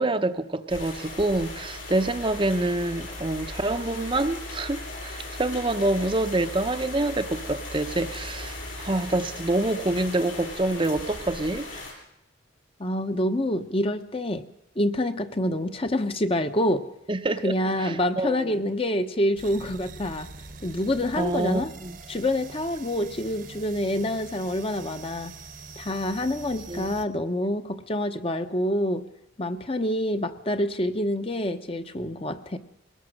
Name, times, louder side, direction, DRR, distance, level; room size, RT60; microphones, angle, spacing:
voice 1, 0.0-11.7 17.1-18.5 21.2-22.0 26.7-26.9, right 2 dB, 25° right, 8 dB, 0.8 m, -27 dB
sound 1, 0.7-11.9, left 2 dB, 85° left, 7.5 m, -38 dB
voice 2, 12.8-14.4 14.8-16.9 17.4-20.3 20.6-21.7 22.1-25.3 25.8-29.0 29.4-32.6, left 1 dB, 30° left, 8 dB, 0.9 m, -27 dB
sound 2, 19.3-27.1, right 4 dB, 45° right, 1.1 m, -44 dB
22.5 x 18.5 x 6.5 m, 0.81 s
head